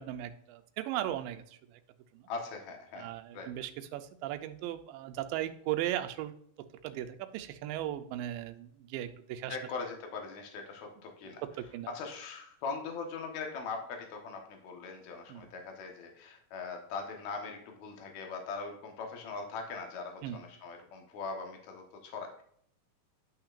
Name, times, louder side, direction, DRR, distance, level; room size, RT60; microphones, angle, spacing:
voice 1, 0.0-1.4 1.7-1.8 2.1-2.2 3.0-6.3 6.8-9.6 11.4-11.9 15.3-15.5 20.2-20.4, right 12 dB, 85° right, 8 dB, 2.3 m, -37 dB
voice 2, 2.3-3.5 9.5-11.4 11.9-22.4, left 4 dB, 60° left, 3 dB, 2.4 m, -41 dB
11.0 x 5.8 x 2.5 m, 0.65 s
omnidirectional pair, 4.0 m